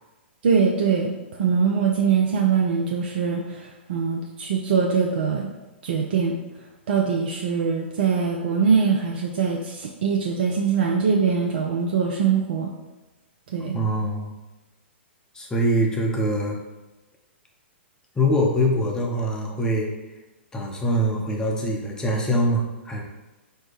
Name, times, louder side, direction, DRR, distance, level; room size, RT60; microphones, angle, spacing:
voice 1, 0.4-1.1 1.4-5.5 5.8-6.4 6.9-12.7 13.5-13.8, right 6 dB, 55° right, 0 dB, 0.5 m, -22 dB
voice 2, 13.7-14.3 15.3-16.6 18.2-19.9 20.5-23.0, equal, 10° left, -1 dB, 0.8 m, -23 dB
4.3 x 2.1 x 4.6 m, 1.1 s
figure-of-eight pair, 115°, 6 cm